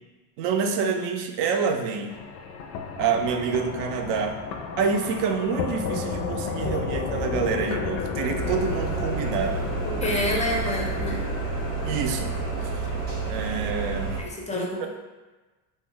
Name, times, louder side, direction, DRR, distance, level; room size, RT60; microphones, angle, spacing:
voice 1, 0.4-2.1 3.0-4.4 4.8-9.6 11.9-12.7 13.2-14.2 14.5-14.9, right 6 dB, 65° right, 5 dB, 0.5 m, -27 dB
sound 1, 2.1-13.5, left 5 dB, 80° left, 0.5 m, -33 dB
sound 2, 8.3-14.2, right 4 dB, 90° right, 0.9 m, -30 dB
voice 2, 9.8-11.2 14.2-14.9, left 1 dB, 15° left, -2 dB, 0.4 m, -28 dB
2.3 x 2.1 x 3.7 m, 1.2 s
supercardioid pair, 100°, 47 cm